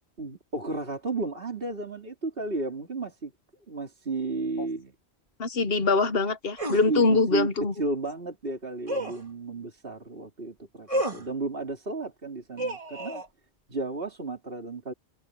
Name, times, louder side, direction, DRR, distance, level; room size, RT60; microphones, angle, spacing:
voice 1, 0.2-3.3 3.7-4.9 6.9-7.5 7.8-13.2 13.7-14.9, right 3 dB, 50° right, 3.6 m, -33 dB
voice 2, 5.4-7.7, left 3 dB, 55° left, 1.3 m, -23 dB
sound 1, 6.6-6.9 8.9-9.2 10.9-11.3 12.6-13.3, right 1 dB, 30° right, 2.5 m, -30 dB
omnidirectional pair, 1.2 m